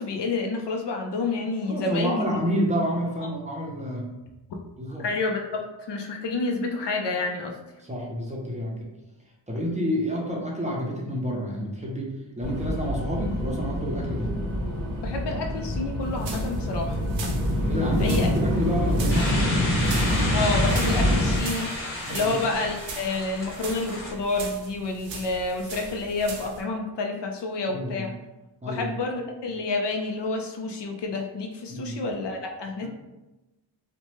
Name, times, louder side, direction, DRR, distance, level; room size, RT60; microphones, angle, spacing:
voice 1, 0.0-2.2 5.0-5.6 5.9-7.5 15.0-17.0 18.0-18.3 20.3-28.1 28.7-32.9, left 3 dB, 65° left, 3 dB, 0.5 m, -29 dB
voice 2, 1.6-4.0 4.8-5.1 7.8-8.9 9.5-12.1 12.4-14.3 17.7-19.5 22.0-22.3 27.7-28.1 28.6-28.9 31.7-32.0, equal, 15° right, -3 dB, 0.5 m, -29 dB
sound 1, 12.4-21.4, left 1 dB, 10° left, 1.0 m, -25 dB
sound 2, 16.0-26.6, right 4 dB, 85° right, 0.6 m, -40 dB
sound 3, 19.1-24.1, left 1 dB, 30° left, 1.2 m, -32 dB
2.9 x 2.1 x 3.0 m, 1.0 s
wide cardioid pair, 115°, 44 cm